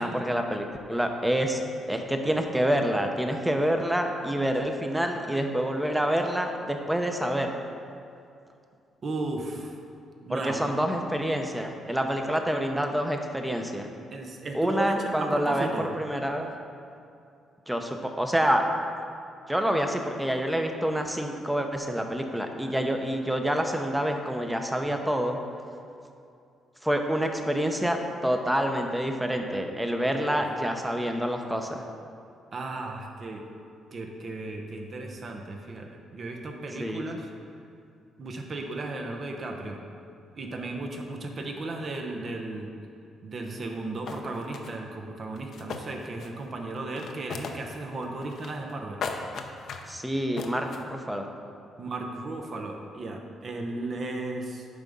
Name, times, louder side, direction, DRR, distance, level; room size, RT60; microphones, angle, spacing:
voice 1, 0.0-1.6 1.9-7.5 10.3-13.9 14.5-15.7 15.9-16.6 17.7-18.6 19.5-25.4 26.8-31.8 36.8-37.2 49.9-51.3, equal, 5° right, 4 dB, 0.8 m, -27 dB
voice 2, 9.0-9.8 10.2-10.7 14.1-15.9 30.0-30.4 32.5-33.5 33.9-37.3 38.2-39.8 40.4-42.7 43.2-49.0 51.8-54.7, right 2 dB, 45° right, 2 dB, 0.9 m, -35 dB
sound 1, 43.7-43.8 44.1-44.7 45.4-46.5 46.8-47.8 48.0-48.7 49.0-49.9 50.4-50.8, left 5 dB, 65° left, 0.6 m, -37 dB
9.5 x 3.6 x 5.4 m, 2.5 s
cardioid pair, 90°, 0 cm